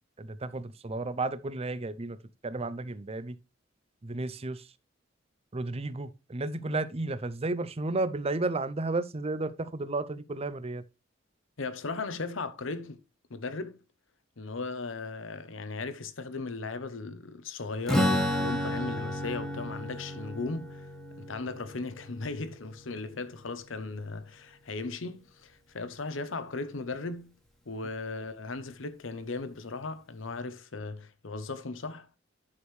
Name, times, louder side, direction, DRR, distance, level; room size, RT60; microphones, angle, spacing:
voice 1, 0.2-2.2 2.4-3.3 4.0-4.6 5.5-10.8, right 2 dB, 30° right, 0.6 m, -32 dB
voice 2, 11.6-13.0 13.3-13.8 14.4-20.9 21.2-27.3 27.7-32.2, left 3 dB, 80° left, 0.9 m, -37 dB
Strum, 17.9-23.5, left 1 dB, ahead, 1.5 m, -32 dB
9.7 x 6.4 x 3.3 m
head